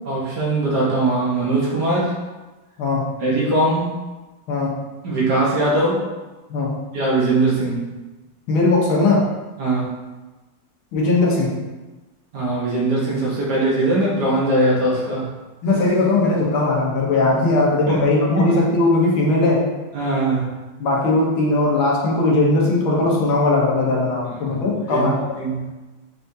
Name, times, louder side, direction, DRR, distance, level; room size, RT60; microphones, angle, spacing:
voice 1, 0.1-2.1 3.2-4.0 5.0-6.0 6.9-7.9 9.6-9.9 12.3-15.3 17.9-18.0 19.9-20.5 24.5-24.6 24.9-25.1 25.4-25.7, right 2 dB, 60° right, -5 dB, 1.5 m, -20 dB
voice 2, 2.8-3.1 4.5-4.7 6.5-6.8 8.5-9.3 10.9-11.5 15.6-19.7 20.8-25.2, left 2 dB, 75° left, -3 dB, 1.7 m, -18 dB
5.7 x 3.4 x 2.7 m, 1.2 s
omnidirectional pair, 2.3 m